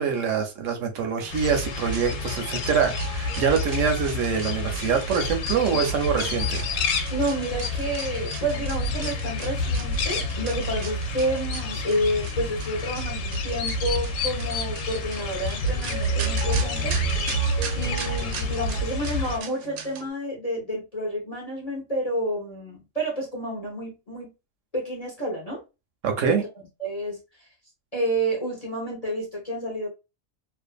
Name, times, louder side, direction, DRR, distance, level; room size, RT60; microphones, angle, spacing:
voice 1, 0.0-6.6 26.0-26.4, right 6 dB, 70° right, 0.9 m, -25 dB
sound 1, 1.2-20.1, right 9 dB, 85° right, 1.1 m, -35 dB
sound 2, 1.3-19.4, left 3 dB, 70° left, 0.9 m, -29 dB
voice 2, 7.1-17.0 17.7-24.3 24.7-25.6 26.8-27.5 27.9-29.9, right 1 dB, 40° left, 0.6 m, -30 dB
2.5 x 2.3 x 2.2 m
omnidirectional pair, 1.5 m